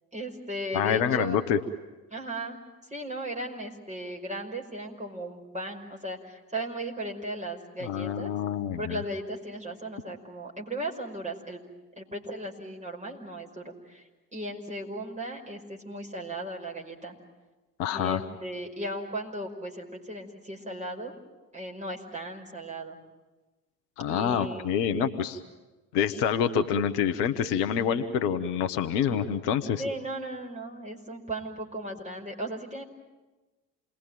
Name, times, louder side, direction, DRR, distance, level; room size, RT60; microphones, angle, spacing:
voice 1, 0.1-1.4 2.1-2.6 2.9-8.3 8.8-11.6 12.0-17.1 17.9-21.1 21.5-23.0 24.1-24.8 27.7-28.2 29.8-32.8, right 1 dB, 15° right, 0 dB, 5.5 m, -36 dB
voice 2, 0.7-1.6 7.8-9.0 17.8-18.2 24.0-25.4 25.9-29.8, left 8 dB, 55° left, 10 dB, 1.3 m, -27 dB
28.0 x 21.0 x 9.2 m, 1.2 s
figure-of-eight pair, 55°, 47 cm